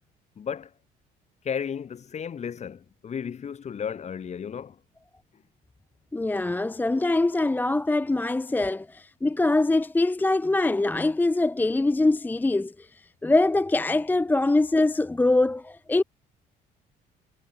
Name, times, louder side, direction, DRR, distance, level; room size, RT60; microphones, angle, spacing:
voice 1, 0.4-0.7 1.4-4.8 8.6-8.7, left 7 dB, 40° left, 7.1 m, -34 dB
voice 2, 6.1-16.0, left 2 dB, 10° left, 0.6 m, -23 dB
cardioid pair, 110°, 17 cm